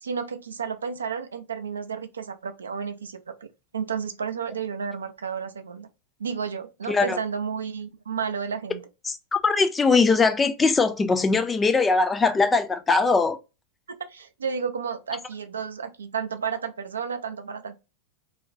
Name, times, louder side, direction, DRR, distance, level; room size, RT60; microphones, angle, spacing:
voice 1, 0.0-3.5 3.7-5.9 6.2-8.8 13.9-17.8, right 6 dB, 70° right, 0.3 m, -32 dB
voice 2, 6.9-7.2 9.0-13.4, left 4 dB, 15° left, 0.4 m, -21 dB
2.7 x 2.1 x 2.5 m
figure-of-eight pair, 90°, 0 cm